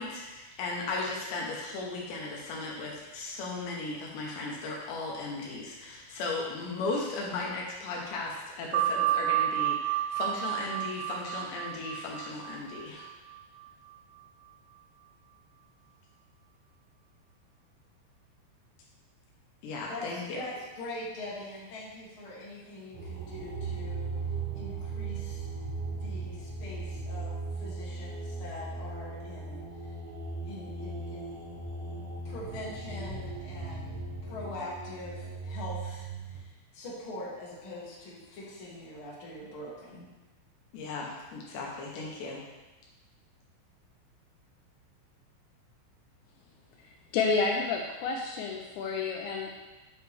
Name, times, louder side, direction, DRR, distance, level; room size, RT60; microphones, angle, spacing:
voice 1, 0.0-13.0 19.6-20.4 40.7-42.4, left 3 dB, 70° left, -2 dB, 2.9 m, -36 dB
sound 1, 8.7-13.9, right 13 dB, 80° right, 3.1 m, -31 dB
voice 2, 19.9-24.1 24.5-25.4 25.9-29.9 30.4-31.4 32.2-40.1, left 2 dB, 45° left, -7 dB, 1.8 m, -43 dB
sound 2, 22.9-36.4, right 3 dB, 60° right, 2.9 m, -38 dB
voice 3, 47.1-49.5, left 4 dB, 90° left, 0 dB, 2.6 m, -29 dB
9.4 x 6.7 x 3.4 m, 1.1 s
omnidirectional pair, 5.9 m